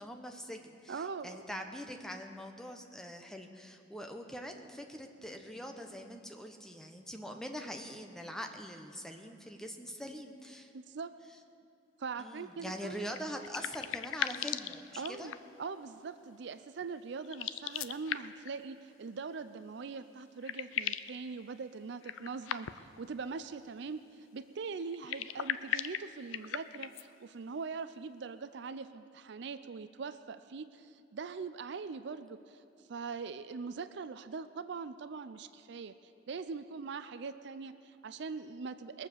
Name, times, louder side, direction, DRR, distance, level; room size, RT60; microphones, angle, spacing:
voice 1, 0.0-10.7 12.2-15.3, equal, 5° left, 4 dB, 0.9 m, -43 dB
voice 2, 0.9-1.4 10.7-11.1 12.0-13.0 15.0-32.6 32.9-39.1, right 4 dB, 60° right, 12 dB, 0.5 m, -42 dB
sound 1, 13.1-15.6 17.2-18.5 19.9-20.0 20.2-21.2 22.0-23.0 24.9-27.1, left 10 dB, 85° left, 0.4 m, -38 dB
21.0 x 7.4 x 6.7 m, 2.7 s
head